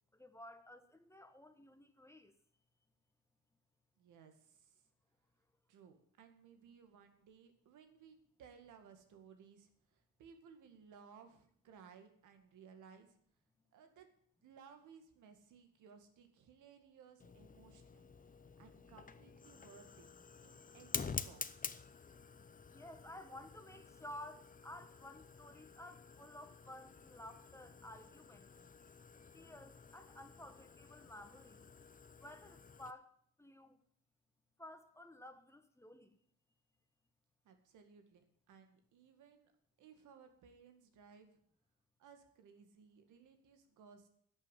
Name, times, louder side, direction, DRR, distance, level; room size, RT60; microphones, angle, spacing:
voice 1, 0.1-2.3 22.7-28.5 29.3-31.7 32.2-33.1 33.4-33.8 34.6-36.1, left 1 dB, 10° left, 1.4 m, -54 dB
voice 2, 4.0-4.8 5.7-13.1 13.7-14.1 14.4-18.1 18.6-20.1 20.4-21.5 37.4-39.5 39.8-41.4 42.0-44.1, right 6 dB, 80° right, 2.1 m, -61 dB
Fire, 17.2-32.9, left 5 dB, 25° left, 0.8 m, -49 dB
11.5 x 6.7 x 9.2 m
cardioid pair, 90°, 30 cm